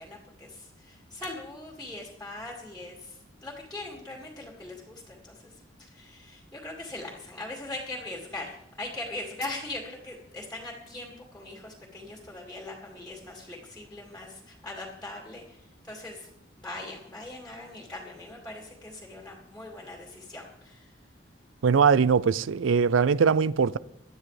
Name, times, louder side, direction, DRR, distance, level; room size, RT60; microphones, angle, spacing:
voice 1, 0.0-5.5 5.8-16.3 16.6-20.9, left 2 dB, 5° left, 2.3 m, -41 dB
voice 2, 21.6-23.8, right 6 dB, 80° right, 0.4 m, -21 dB
19.5 x 12.5 x 3.3 m
head